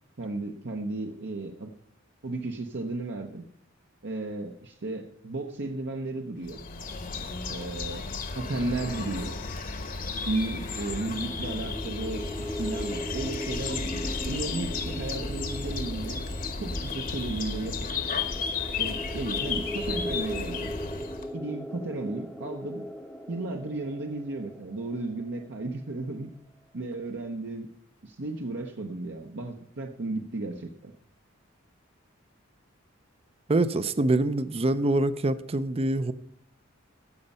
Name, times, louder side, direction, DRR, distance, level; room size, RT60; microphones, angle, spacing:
voice 1, 0.2-1.7 2.2-3.4 4.0-6.6 7.5-8.1 8.3-9.4 10.2-16.2 16.6-17.9 18.8-20.7 21.3-22.8 23.3-26.3 26.7-27.7 28.0-30.9, right 2 dB, 60° right, 2 dB, 0.9 m, -34 dB
sound 1, 6.4-21.3, left 4 dB, 45° left, 1.0 m, -33 dB
sound 2, 10.1-25.8, equal, 5° left, 0.7 m, -39 dB
voice 2, 33.5-36.1, right 2 dB, 30° right, 13 dB, 0.5 m, -25 dB
14.5 x 5.4 x 5.5 m, 0.72 s
head